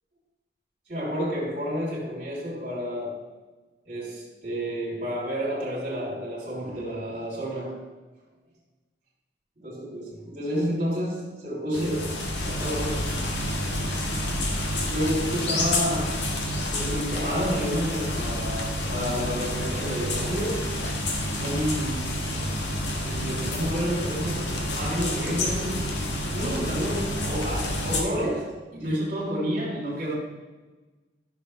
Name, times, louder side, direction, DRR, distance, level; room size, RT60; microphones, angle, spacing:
voice 1, 0.9-3.3 3.8-7.9 9.6-13.2 14.9-16.3 16.7-20.8 21.3-21.9 22.4-22.6 23.0-26.0 26.3-30.1, equal, 45° right, -7 dB, 3.4 m, -30 dB
sound 1, 11.7-28.0, left 1 dB, 75° left, 1.6 m, -29 dB
14.0 x 7.0 x 3.3 m, 1.2 s
head